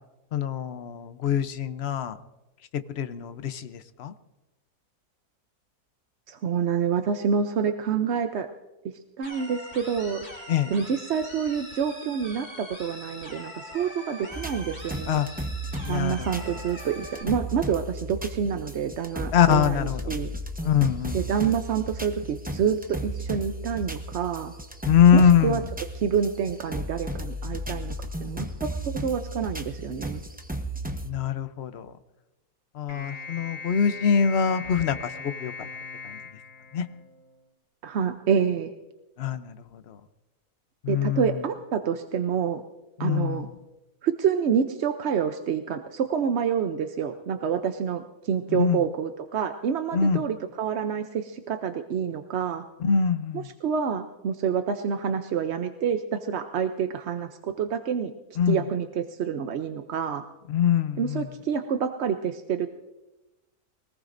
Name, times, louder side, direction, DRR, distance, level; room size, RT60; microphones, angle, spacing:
voice 1, 0.3-2.2 3.0-4.1 10.5-10.7 15.1-15.3 15.8-16.3 19.3-20.0 20.6-21.2 24.9-25.5 31.0-31.9 32.8-35.5 36.7-36.8 39.2-39.5 39.9-40.0 40.8-41.2 43.0-43.4 48.5-48.8 49.9-50.2 52.8-53.4 58.4-58.6 60.5-61.2, left 8 dB, 55° left, 11 dB, 0.9 m, -23 dB
voice 2, 6.3-8.5 9.2-10.3 10.7-15.2 15.9-20.3 21.1-24.5 25.1-25.6 25.9-30.2 37.8-38.7 40.9-42.6 43.0-43.5 44.0-52.6 53.3-58.1 58.5-60.2 61.0-62.7, right 7 dB, 55° right, 7 dB, 0.8 m, -27 dB
sound 1, 9.2-17.2, equal, 35° left, 4.4 m, -42 dB
sound 2, 14.3-31.1, right 1 dB, 10° right, 0.6 m, -35 dB
sound 3, 32.9-37.4, left 4 dB, 85° left, 2.7 m, -40 dB
23.5 x 19.0 x 2.6 m, 1.0 s
omnidirectional pair, 1.6 m